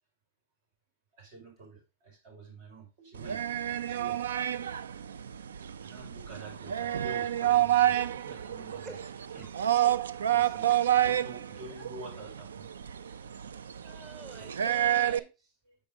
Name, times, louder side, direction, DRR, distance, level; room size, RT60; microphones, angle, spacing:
voice 1, 1.1-3.4 3.7-4.4 5.5-9.0 9.3-9.9 10.3-10.7 11.0-12.7 14.4-14.7 15.7-15.8, right 3 dB, 70° right, 1 dB, 5.2 m, -48 dB
sound 1, 3.1-15.2, right 12 dB, 90° right, 0.4 m, -29 dB
voice 2, 8.8-9.2 11.7-11.8 13.1-15.5, right 3 dB, 25° right, 5 dB, 1.3 m, -49 dB
7.2 x 4.8 x 5.1 m, 0.29 s
hypercardioid pair, 115°, 0 cm